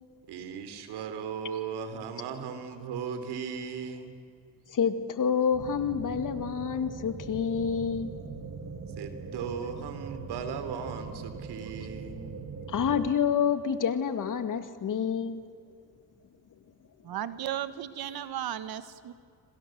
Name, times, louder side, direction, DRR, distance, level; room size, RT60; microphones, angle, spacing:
voice 1, 0.3-4.1 9.0-12.4, right 6 dB, 80° right, 9 dB, 3.3 m, -37 dB
voice 2, 4.7-8.1 12.7-15.4, left 7 dB, 50° left, 10 dB, 2.2 m, -28 dB
sound 1, 5.5-13.1, right 5 dB, 40° right, 2.2 m, -41 dB
voice 3, 17.0-19.1, right 11 dB, 65° right, 13 dB, 1.5 m, -35 dB
28.0 x 26.0 x 7.8 m, 2.2 s
cardioid pair, 85°, 39 cm